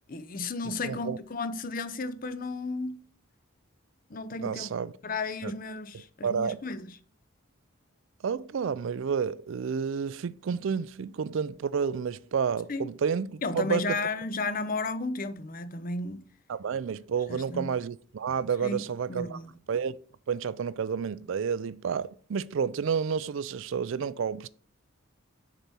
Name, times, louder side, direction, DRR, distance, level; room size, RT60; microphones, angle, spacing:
voice 1, 0.1-3.0 4.1-4.7 5.0-6.9 12.7-12.9 13.4-16.2 17.3-17.7 18.6-19.5, left 3 dB, 40° left, 0.6 m, -33 dB
voice 2, 0.6-1.2 4.4-4.9 5.4-5.5 6.2-6.6 8.2-14.0 16.5-19.4 19.7-20.0 20.3-24.5, right 6 dB, 65° right, 0.4 m, -30 dB
6.7 x 4.2 x 6.1 m
head